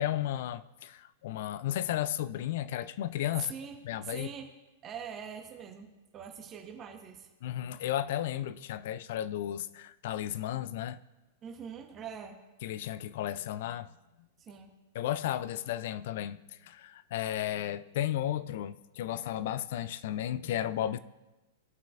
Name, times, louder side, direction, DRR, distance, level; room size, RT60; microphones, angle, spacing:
voice 1, 0.0-3.5 3.8-4.3 7.4-11.0 12.6-13.9 14.9-21.0, left 12 dB, 55° left, 0.4 m, -34 dB
voice 2, 3.4-3.8 4.0-4.5 4.8-7.3 11.4-12.4 14.4-14.7, right 7 dB, 30° right, 1.0 m, -43 dB
17.5 x 5.8 x 2.5 m
figure-of-eight pair, 100°, 0 cm